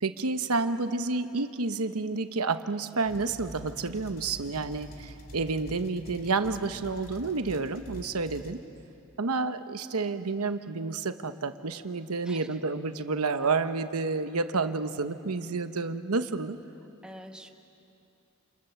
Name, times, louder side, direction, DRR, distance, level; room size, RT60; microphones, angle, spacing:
voice 1, 0.0-8.6 9.2-16.6, right 3 dB, 85° right, 9 dB, 1.0 m, -30 dB
sound 1, 3.1-8.6, equal, 45° left, 2.3 m, -47 dB
voice 2, 12.2-12.6 17.0-17.5, equal, 5° right, 3 dB, 1.4 m, -46 dB
28.5 x 28.0 x 7.0 m, 2.7 s
head